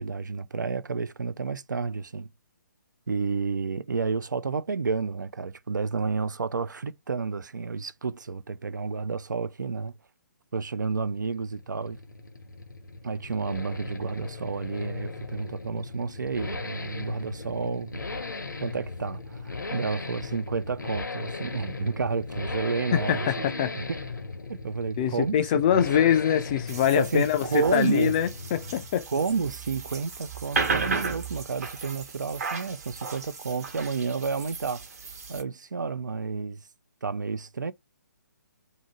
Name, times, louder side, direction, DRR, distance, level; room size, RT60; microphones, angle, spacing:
voice 1, 0.0-2.3 3.1-9.9 10.5-12.0 13.0-18.2 18.6-24.0 24.5-25.3 25.7-25.9 26.9-28.2 29.1-34.8 35.3-36.6 37.0-37.7, right 5 dB, 75° right, 0.4 m, -30 dB
Accelerating revving vroom, 10.8-29.0 29.3-29.4, left 3 dB, 75° left, 0.8 m, -38 dB
voice 2, 22.9-23.7 25.0-29.1, left 9 dB, 25° left, 0.4 m, -24 dB
sound 1, 26.7-35.4, right 4 dB, 55° right, 1.2 m, -34 dB
2.7 x 2.6 x 2.8 m
figure-of-eight pair, 135°, 10 cm